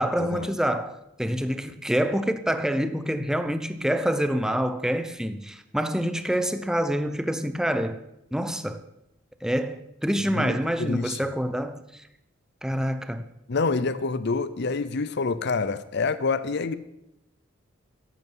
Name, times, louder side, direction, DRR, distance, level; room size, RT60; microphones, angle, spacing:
voice 1, 0.0-8.0 8.3-8.8 9.4-12.0 12.6-13.3, equal, 5° right, 0.8 m, -26 dB
voice 2, 10.3-11.2 13.5-16.8, left 4 dB, 60° left, 0.6 m, -27 dB
14.0 x 11.0 x 5.5 m
head